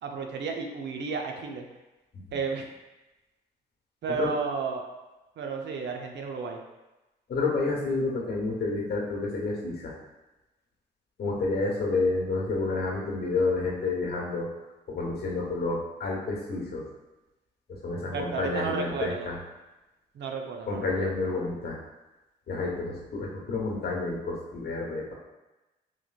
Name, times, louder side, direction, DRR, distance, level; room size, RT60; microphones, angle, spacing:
voice 1, 0.0-1.6 2.3-2.7 4.0-4.8 5.4-6.6 18.0-19.3 20.1-21.0, right 5 dB, 65° right, 3 dB, 0.6 m, -33 dB
voice 2, 7.3-9.9 11.2-14.5 14.9-16.9 17.7-19.4 20.7-21.8 22.5-25.1, left 3 dB, 55° left, -2 dB, 1.1 m, -29 dB
4.2 x 3.0 x 2.4 m, 1.1 s
supercardioid pair, 55°, 20 cm